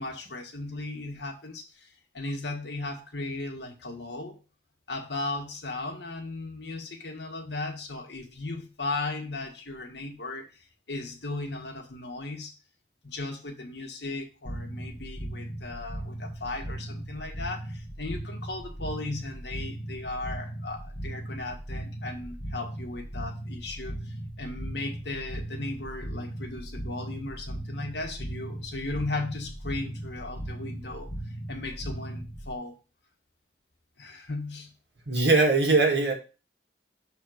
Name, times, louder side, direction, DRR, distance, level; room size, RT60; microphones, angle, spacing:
voice 1, 0.0-4.4 4.9-12.5 13.0-32.8 34.0-34.7, left 2 dB, 70° left, 2 dB, 1.6 m, -36 dB
sound 1, 14.4-32.5, right 1 dB, 25° left, 1.6 m, -38 dB
voice 2, 35.1-36.1, right 3 dB, 70° right, 1 dB, 2.3 m, -21 dB
6.5 x 4.3 x 6.3 m, 0.32 s
head